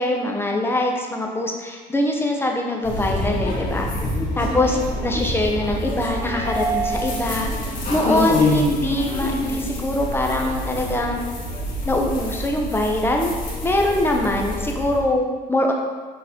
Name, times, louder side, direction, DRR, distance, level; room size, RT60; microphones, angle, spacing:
voice 1, 0.0-3.9 4.4-7.5 7.9-11.2 11.8-13.3 13.6-15.7, left 1 dB, 15° left, 1 dB, 0.9 m, -23 dB
sound 1, 2.8-15.0, left 1 dB, 50° left, 1.7 m, -26 dB
6.2 x 4.0 x 4.3 m, 1.4 s
cardioid pair, 110°, 17 cm